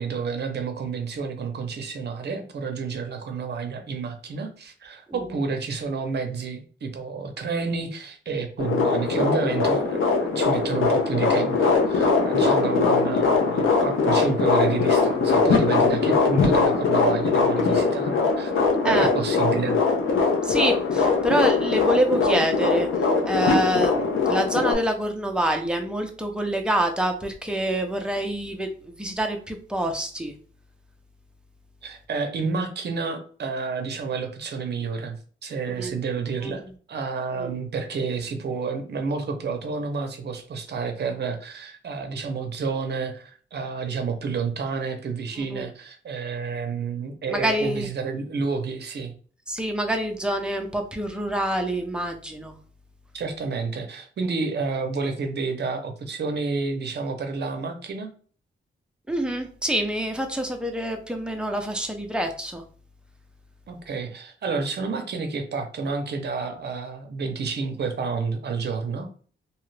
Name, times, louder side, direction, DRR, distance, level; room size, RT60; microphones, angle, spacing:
voice 1, 0.0-18.5 18.9-19.8 31.8-35.2 35.4-49.1 53.1-58.1 63.7-69.1, right 4 dB, 55° right, 6 dB, 0.6 m, -30 dB
sound 1, 8.6-24.7, left 4 dB, 80° left, 0.7 m, -21 dB
voice 2, 20.4-22.9 23.3-28.7 29.0-30.3 35.8-35.9 36.4-36.7 37.4-37.5 45.4-45.7 47.3-47.9 49.5-52.6 59.1-62.6, right 1 dB, 5° right, 3 dB, 0.5 m, -26 dB
2.8 x 2.4 x 3.2 m, 0.43 s
wide cardioid pair, 125°, 21 cm